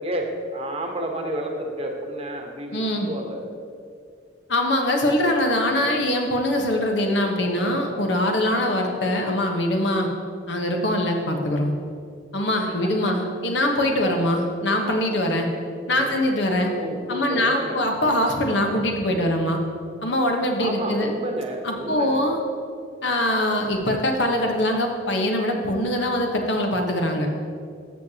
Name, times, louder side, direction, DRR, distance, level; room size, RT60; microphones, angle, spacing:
voice 1, 0.0-3.4 13.0-13.1 15.9-16.2 16.8-17.8 20.6-22.3, right 1 dB, 35° right, 2 dB, 1.0 m, -31 dB
voice 2, 2.7-3.1 4.5-10.1 10.5-11.7 12.3-15.5 15.9-16.7 17.1-19.6 20.0-21.1 21.6-22.4 23.0-27.3, left 1 dB, 70° left, 2 dB, 1.1 m, -23 dB
13.5 x 6.6 x 2.9 m, 2.3 s
head